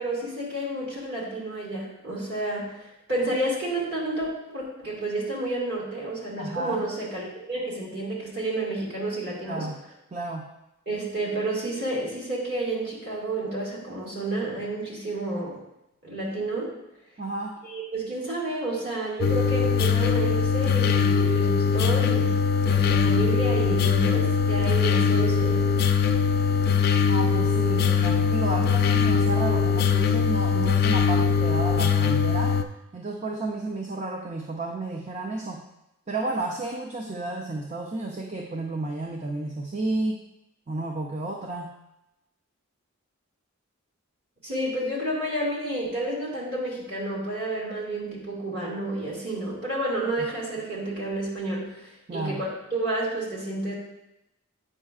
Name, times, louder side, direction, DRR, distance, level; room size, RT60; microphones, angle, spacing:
voice 1, 0.0-9.7 10.9-15.6 16.0-16.7 17.6-22.4 22.6-25.7 44.4-53.7, right 2 dB, 50° right, -6 dB, 2.1 m, -30 dB
voice 2, 6.4-6.9 9.5-9.7 10.1-10.5 17.2-17.6 27.1-32.6 32.9-35.7 36.1-40.2 40.7-41.7 52.1-52.4, right 2 dB, 35° right, 2 dB, 0.4 m, -32 dB
sound 1, 19.2-32.6, left 6 dB, 45° left, 0.3 m, -22 dB
8.5 x 5.4 x 2.4 m, 0.89 s
head